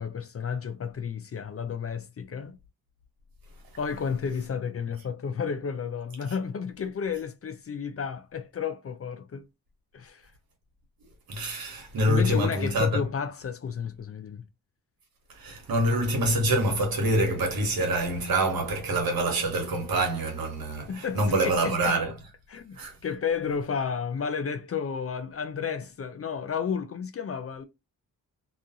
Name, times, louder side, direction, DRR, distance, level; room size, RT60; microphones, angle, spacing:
voice 1, 0.0-2.6 3.8-9.5 9.9-10.3 12.1-14.5 20.9-22.0 22.5-22.8 23.0-27.7, left 6 dB, 40° left, 0.5 m, -32 dB
voice 2, 11.3-13.0 15.4-22.1 22.7-22.9, right 1 dB, 70° right, 1.1 m, -26 dB
2.4 x 2.4 x 2.7 m
cardioid pair, 45°, 37 cm